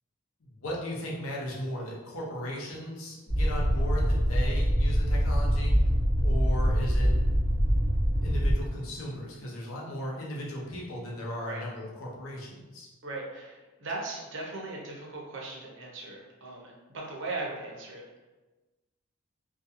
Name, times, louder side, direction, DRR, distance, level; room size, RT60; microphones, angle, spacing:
voice 1, 0.4-5.7 6.2-7.1 8.2-12.9, left 1 dB, 75° left, -3 dB, 0.7 m, -36 dB
sound 1, 3.3-8.5, equal, 30° left, 1.1 m, -24 dB
voice 2, 13.0-18.0, right 2 dB, 60° right, -2 dB, 0.6 m, -38 dB
2.5 x 2.2 x 2.7 m, 1.1 s
head